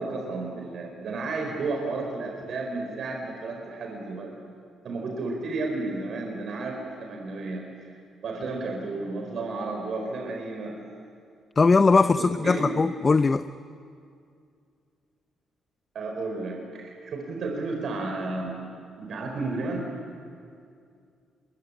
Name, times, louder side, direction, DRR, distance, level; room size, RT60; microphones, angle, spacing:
voice 1, 0.0-4.3 4.8-7.9 8.2-10.8 12.2-12.7 15.9-18.6 19.0-19.8, right 3 dB, 60° right, 1 dB, 4.6 m, -32 dB
voice 2, 11.6-13.5, left 4 dB, 30° left, 11 dB, 0.7 m, -20 dB
26.0 x 22.0 x 10.0 m, 2.3 s
cardioid pair, 90°, 0 cm